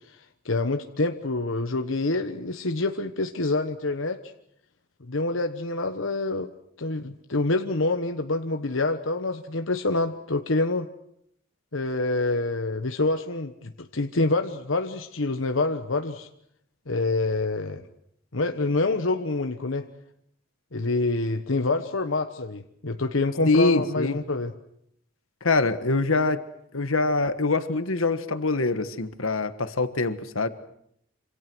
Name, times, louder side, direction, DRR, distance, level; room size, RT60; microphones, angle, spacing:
voice 1, 0.4-4.2 5.1-6.5 6.8-10.9 11.7-16.3 16.9-17.8 18.3-19.9 20.7-24.5, left 2 dB, 70° left, 7 dB, 1.2 m, -26 dB
voice 2, 23.5-24.2 25.4-26.4 26.7-30.5, left 3 dB, 90° left, 11 dB, 1.6 m, -24 dB
27.0 x 26.5 x 6.3 m, 0.72 s
head